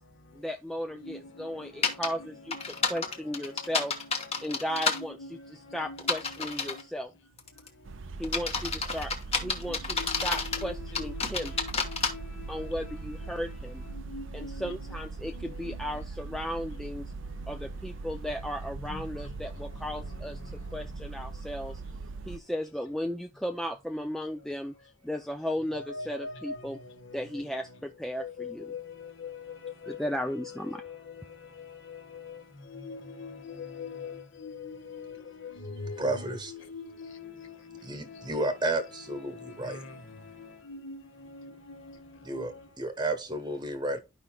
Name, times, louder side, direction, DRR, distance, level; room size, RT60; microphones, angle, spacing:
voice 1, 0.3-2.6 2.9-3.9 4.4-7.1 8.2-11.5 12.5-13.8 14.3-17.1 17.5-20.4 20.7-21.8 22.3-24.7 25.0-26.8 27.1-28.7 29.9-30.8, equal, ahead, 0.3 m, -35 dB
voice 2, 1.0-3.1 3.8-4.1 4.4-6.8 9.4-12.9 13.4-13.5 13.9-15.0 15.2-16.4 18.7-19.3 25.7-27.4 28.2-31.1 31.5-37.8 38.1-40.0 40.4-42.6, left 4 dB, 60° left, 1.5 m, -44 dB
sound 1, 1.8-2.1 2.5-5.0 6.0-6.8 7.4-7.7 8.2-10.6 10.9-12.1, left 4 dB, 30° left, 1.1 m, -29 dB
sound 2, 7.8-22.4, right 3 dB, 60° right, 0.5 m, -40 dB
voice 3, 36.0-36.5 37.8-39.8 42.2-44.0, right 2 dB, 20° right, 1.1 m, -32 dB
12.0 x 5.2 x 2.3 m
head